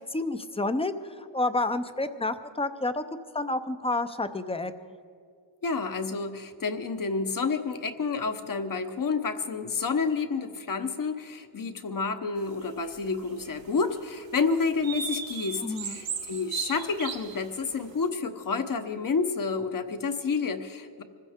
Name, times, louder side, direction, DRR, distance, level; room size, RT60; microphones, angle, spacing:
voice 1, 0.1-3.0 3.3-5.0 15.6-16.0, left 2 dB, 15° left, 11 dB, 0.6 m, -30 dB
voice 2, 5.6-21.0, left 4 dB, 45° left, 8 dB, 1.1 m, -29 dB
sound 1, 12.6-13.6 14.2-14.3 14.8-17.7, right 7 dB, 75° right, 1.2 m, -36 dB
25.5 x 15.5 x 3.6 m, 2.2 s
cardioid pair, 100°, 46 cm